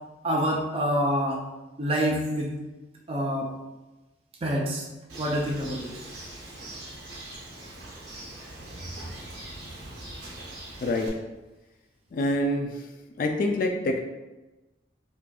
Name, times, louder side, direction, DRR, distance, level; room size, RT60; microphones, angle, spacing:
voice 1, 0.2-1.4 1.8-2.6 3.1-3.5 4.4-4.8 5.2-5.9, equal, 30° right, -2 dB, 0.4 m, -26 dB
Bird, 5.1-11.1, right 1 dB, 70° right, 0.9 m, -41 dB
voice 2, 10.8-11.1 12.1-12.9 13.2-14.0, left 1 dB, 50° left, 3 dB, 0.3 m, -26 dB
4.7 x 2.5 x 2.3 m, 1.1 s
head